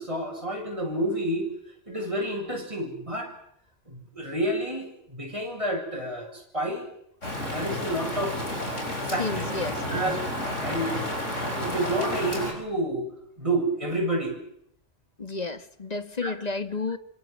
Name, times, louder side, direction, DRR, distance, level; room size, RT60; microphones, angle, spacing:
voice 1, 0.0-1.5 1.9-3.3 3.9-6.9 7.5-8.7 9.0-9.4 9.9-10.2 10.6-11.0 11.4-13.1 13.4-14.4 16.2-16.3, right 1 dB, 25° right, 8.0 m, -29 dB
Rain, 7.2-12.5, left 1 dB, 85° left, 7.4 m, -31 dB
voice 2, 9.2-9.8 15.2-17.0, left 4 dB, 35° left, 1.8 m, -31 dB
27.5 x 26.0 x 7.7 m
omnidirectional pair, 1.2 m